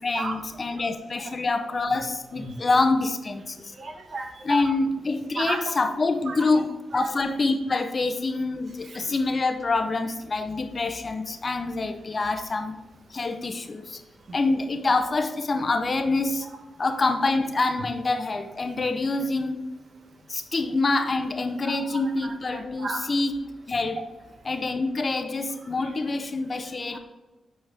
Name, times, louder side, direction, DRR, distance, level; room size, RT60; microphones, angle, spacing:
voice 1, 0.0-3.7 4.4-12.8 13.1-14.0 14.3-16.5 16.8-19.6 20.3-23.4 23.7-24.0 24.4-27.0, left 3 dB, 45° left, 8 dB, 0.8 m, -26 dB
voice 2, 3.8-4.6 5.4-5.6 6.3-6.4 7.0-7.1 21.7-21.8 22.5-23.0 26.9-27.0, right 3 dB, 65° right, 4 dB, 1.2 m, -32 dB
8.6 x 4.5 x 3.5 m, 1.1 s
supercardioid pair, 45°, 0 cm